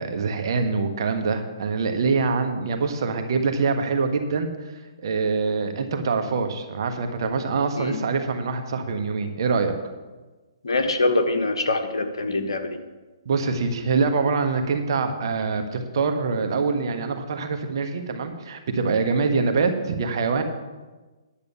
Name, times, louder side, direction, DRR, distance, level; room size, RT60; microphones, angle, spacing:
voice 1, 0.0-4.5 5.0-9.7 13.2-20.4, right 4 dB, 55° right, 6 dB, 1.4 m, -24 dB
voice 2, 10.6-12.8 19.4-19.5, left 2 dB, 80° left, 6 dB, 1.3 m, -24 dB
10.0 x 6.9 x 7.1 m, 1.2 s
hypercardioid pair, 130°, 3 cm